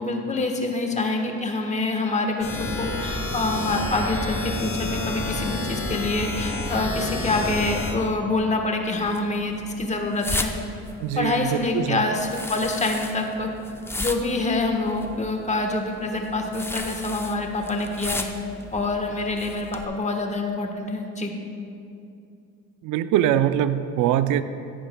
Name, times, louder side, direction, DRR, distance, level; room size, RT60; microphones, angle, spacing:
voice 1, 0.0-10.5 11.1-13.5 14.0-18.3 18.7-21.3, left 2 dB, 25° left, 2 dB, 1.2 m, -26 dB
sound 1, 2.4-7.9, left 2 dB, 45° left, 2.5 m, -29 dB
sound 2, 8.9-19.9, left 1 dB, 10° left, 0.6 m, -36 dB
voice 2, 11.0-12.0 22.8-24.4, right 11 dB, 85° right, 12 dB, 0.4 m, -23 dB
14.5 x 9.6 x 2.2 m, 2.5 s
cardioid pair, 90°, 30 cm